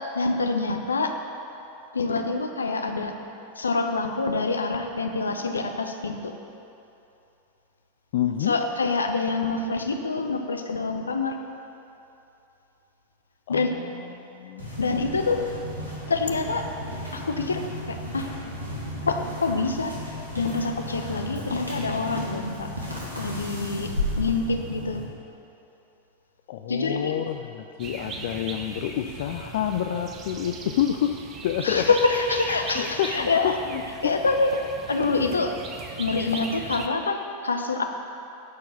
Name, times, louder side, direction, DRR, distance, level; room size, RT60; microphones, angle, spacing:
voice 1, 0.1-1.2 1.9-3.2 3.5-6.3 8.4-11.4 13.5-13.7 14.8-15.5 16.1-16.7 17.1-18.3 19.0-22.7 23.2-25.0 26.7-27.1 31.6-33.6 34.0-35.5 36.0-37.8, left 3 dB, 75° left, 5 dB, 0.7 m, -26 dB
voice 2, 8.1-8.6 13.5-14.7 26.5-31.8 32.8-34.1, left 10 dB, 55° left, 5 dB, 0.4 m, -28 dB
sound 1, 14.6-25.0, left 1 dB, 85° right, 1.9 m, -34 dB
sound 2, 27.8-36.9, right 4 dB, 30° right, 0.8 m, -38 dB
11.0 x 4.6 x 7.0 m, 2.8 s
figure-of-eight pair, 90°, 0 cm